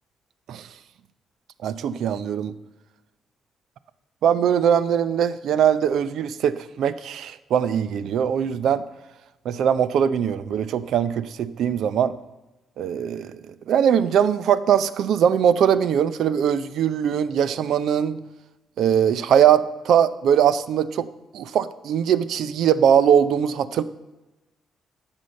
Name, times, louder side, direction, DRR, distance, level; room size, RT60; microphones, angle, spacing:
voice 1, 1.6-2.5 4.2-8.8 9.4-12.1 12.8-18.2 18.8-21.1 21.3-23.8, right 8 dB, 75° right, 15 dB, 0.6 m, -21 dB
11.5 x 7.3 x 5.3 m, 1.0 s
cardioid pair, 90°, 0 cm